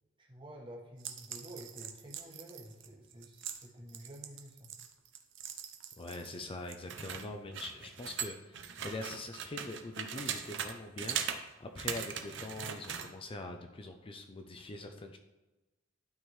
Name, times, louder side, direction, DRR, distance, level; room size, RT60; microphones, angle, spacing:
voice 1, 0.2-4.7, equal, 25° right, -2 dB, 1.4 m, -50 dB
sound 1, 1.0-6.4 6.7-10.7 11.0-11.4 11.8-13.1, right 8 dB, 65° right, 0.8 m, -40 dB
voice 2, 6.0-15.2, left 2 dB, 30° left, 5 dB, 0.5 m, -43 dB
12.0 x 4.5 x 3.2 m, 1.1 s
head